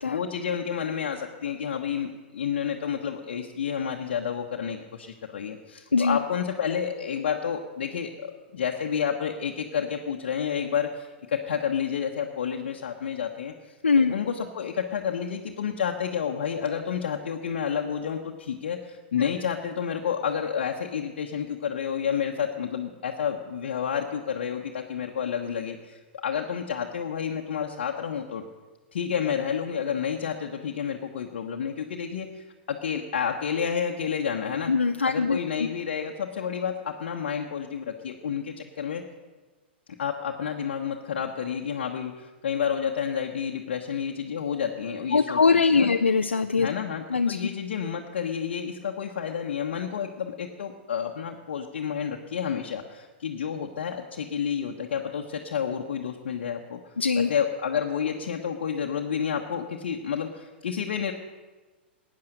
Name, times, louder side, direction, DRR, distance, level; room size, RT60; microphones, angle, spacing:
voice 1, 0.0-13.7 14.1-28.4 28.9-34.7 35.0-39.0 40.0-45.9 46.6-56.8 57.3-61.1, left 7 dB, 65° left, 1 dB, 1.1 m, -30 dB
voice 2, 13.8-14.1 19.2-19.3 34.7-35.4 45.1-46.7 47.1-47.5 57.0-57.3, left 4 dB, 85° left, 7 dB, 0.5 m, -22 dB
16.5 x 9.6 x 6.6 m, 1.3 s
figure-of-eight pair, 100°, 6 cm